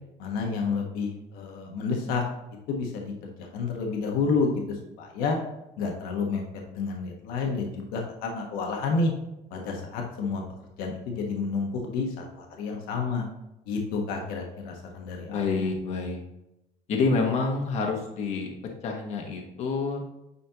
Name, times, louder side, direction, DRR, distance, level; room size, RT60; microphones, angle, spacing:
voice 1, 0.2-2.2 2.7-5.4 5.8-6.4 6.7-9.1 9.5-10.4 10.8-13.3 13.6-15.4, left 4 dB, 70° left, 1 dB, 1.3 m, -30 dB
voice 2, 15.3-16.2 16.9-18.5 18.8-20.0, left 4 dB, 45° left, 2 dB, 1.2 m, -27 dB
9.5 x 4.2 x 2.9 m, 0.91 s
cardioid pair, 160°, 16 cm